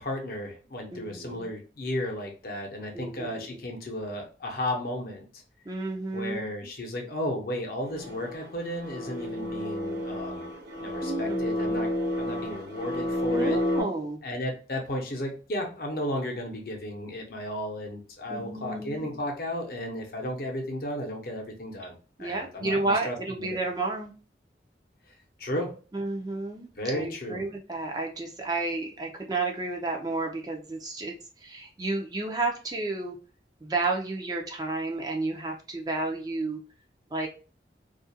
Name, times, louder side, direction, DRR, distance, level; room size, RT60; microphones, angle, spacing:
voice 1, 0.0-5.4 6.1-10.5 10.8-11.9 12.2-13.7 14.2-23.6 25.4-25.8 26.8-27.4, left 1 dB, 55° left, 1 dB, 0.7 m, -34 dB
voice 2, 0.9-1.5 2.9-3.7 5.7-6.7 11.0-11.7 13.3-14.2 18.3-19.2 22.2-24.1 25.9-31.1 31.4-33.1 33.6-36.6 37.1-37.3, right 3 dB, 20° right, 1 dB, 0.4 m, -31 dB
sound 1, 7.9-13.8, left 1 dB, 65° right, 0.8 m, -30 dB
2.4 x 2.2 x 2.6 m, 0.35 s
head